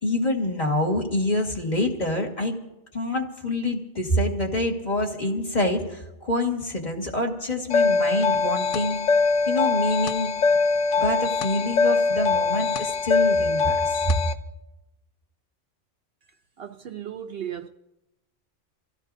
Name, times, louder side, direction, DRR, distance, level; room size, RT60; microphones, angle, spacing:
voice 1, 0.0-2.5 2.9-9.0 9.5-10.3 11.0-14.1, left 1 dB, 35° left, 1.9 m, -26 dB
sound 1, 7.7-14.3, left 4 dB, 75° left, 1.1 m, -22 dB
voice 2, 16.6-17.7, right 9 dB, 60° right, 0.8 m, -35 dB
26.0 x 16.0 x 2.7 m
omnidirectional pair, 1.3 m